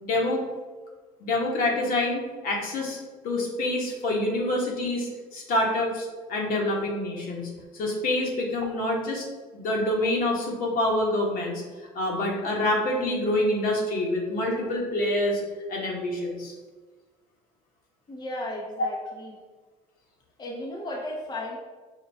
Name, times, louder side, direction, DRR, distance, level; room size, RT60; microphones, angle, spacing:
voice 1, 0.0-0.4 1.2-3.0 3.2-9.3 9.5-11.6 11.9-15.4 15.7-16.5, left 1 dB, 60° left, -1 dB, 1.2 m, -26 dB
voice 2, 18.1-19.3 20.4-21.6, left 1 dB, 25° left, -2 dB, 0.7 m, -35 dB
5.7 x 2.3 x 3.4 m, 1.4 s
supercardioid pair, 85°, 17 cm